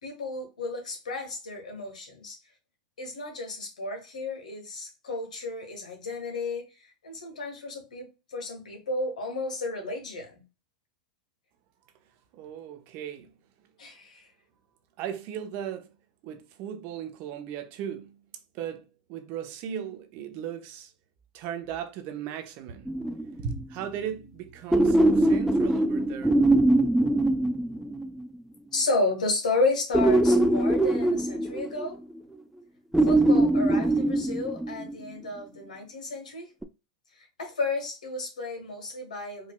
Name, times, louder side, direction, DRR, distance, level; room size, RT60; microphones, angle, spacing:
voice 1, 0.0-2.4 3.0-6.7 7.0-10.4 13.8-14.3 28.7-32.0 33.0-36.5 37.4-39.5, left 3 dB, 85° left, 1.4 m, -32 dB
voice 2, 12.3-13.3 15.0-15.9 16.2-18.2 18.5-20.9 21.3-22.9 23.4-26.4, right 8 dB, 50° right, 0.8 m, -37 dB
sound 1, 22.9-23.6 24.7-28.3 29.9-32.2 32.9-34.9 36.6-36.7, right 1 dB, 5° right, 0.4 m, -22 dB
4.7 x 2.7 x 2.3 m
hypercardioid pair, 95°, 4 cm